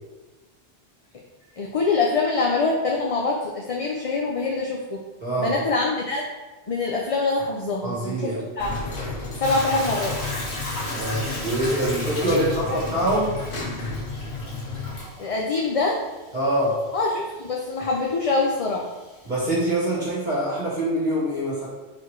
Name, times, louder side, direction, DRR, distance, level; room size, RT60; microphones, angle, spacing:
voice 1, 1.6-5.0 5.4-6.2 6.7-8.7 9.4-10.2 12.2-12.8 15.2-16.0 16.9-18.8, left 3 dB, 40° left, -1 dB, 0.6 m, -24 dB
voice 2, 5.2-5.6 7.8-8.4 10.9-13.4 16.3-16.8 19.2-21.7, right 1 dB, 45° right, -6 dB, 1.5 m, -24 dB
sound 1, 8.6-15.0, left 3 dB, 60° left, 1.1 m, -32 dB
Hiss / Toilet flush / Trickle dribble, 9.4-19.7, left 1 dB, 85° left, 1.9 m, -37 dB
4.7 x 4.3 x 4.6 m, 1.2 s
omnidirectional pair, 1.1 m